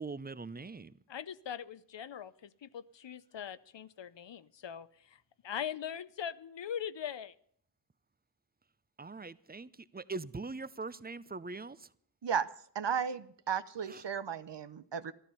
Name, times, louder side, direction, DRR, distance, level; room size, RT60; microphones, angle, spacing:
voice 1, 0.0-0.9 9.0-11.9 13.9-14.0, right 3 dB, 20° right, 0.5 m, -42 dB
voice 2, 1.1-7.3, left 8 dB, 85° left, 0.6 m, -41 dB
voice 3, 12.7-15.1, right 7 dB, 75° right, 0.8 m, -34 dB
14.0 x 12.5 x 5.5 m
wide cardioid pair, 65°, 42 cm